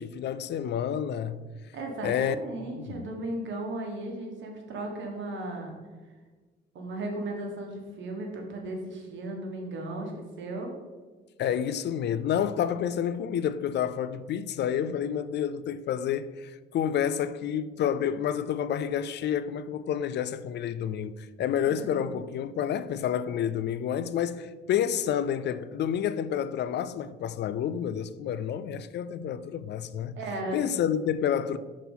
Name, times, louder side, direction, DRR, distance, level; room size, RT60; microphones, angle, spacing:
voice 1, 0.0-1.5 2.0-2.4 2.7-3.1 11.4-30.2 30.5-31.6, left 9 dB, 60° left, 0.4 m, -29 dB
voice 2, 1.7-5.8 6.7-10.7 21.6-22.2 30.1-30.6, right 2 dB, 70° right, 1.5 m, -36 dB
5.8 x 4.2 x 5.5 m
cardioid pair, 90°, 20 cm